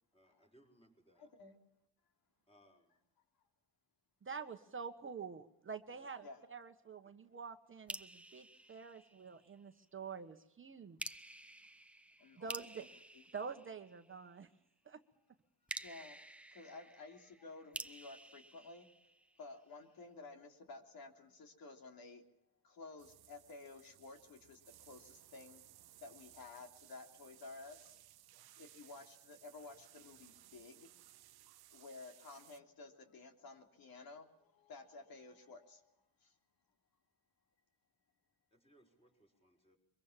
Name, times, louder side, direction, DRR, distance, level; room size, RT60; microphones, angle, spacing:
voice 1, 0.1-1.3 2.5-3.0 5.9-6.1 38.5-39.8, equal, 15° left, 3 dB, 5.9 m, -68 dB
voice 2, 1.2-1.6 6.2-6.5 8.5-8.8 12.2-12.6 15.8-16.2 16.5-18.9 19.4-22.2 22.6-25.7 26.0-28.0 28.6-30.9 31.7-35.9 36.2-36.4, left 3 dB, 60° left, 5 dB, 3.4 m, -54 dB
voice 3, 4.2-11.0 12.4-12.9 13.3-14.5 14.8-15.0, right 5 dB, 30° right, 7 dB, 1.3 m, -47 dB
sound 1, 7.9-9.6 11.0-14.3 15.7-19.6, right 1 dB, 5° right, 0.8 m, -50 dB
sound 2, 23.0-32.6, right 14 dB, 65° right, 0.9 m, -62 dB
24.0 x 22.5 x 7.4 m, 0.83 s
cardioid pair, 115°, 41 cm